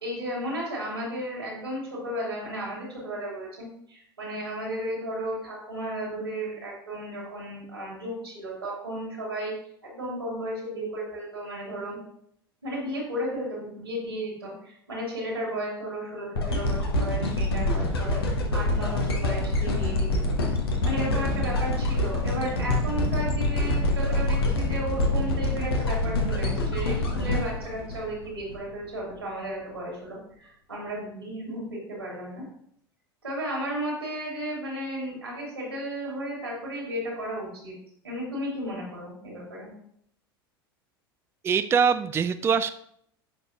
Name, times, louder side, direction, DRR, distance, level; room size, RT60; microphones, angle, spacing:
voice 1, 0.0-9.5 9.8-12.0 12.6-18.2 18.5-20.3 20.8-32.4 33.2-37.7 38.0-39.7, equal, 85° right, -3 dB, 2.9 m, -34 dB
sound 1, 16.3-28.5 29.1-29.2, left 2 dB, 75° left, 1.2 m, -26 dB
voice 2, 41.4-42.7, right 6 dB, 20° right, 11 dB, 0.3 m, -23 dB
8.0 x 5.3 x 2.8 m, 0.68 s
figure-of-eight pair, 80°, 13 cm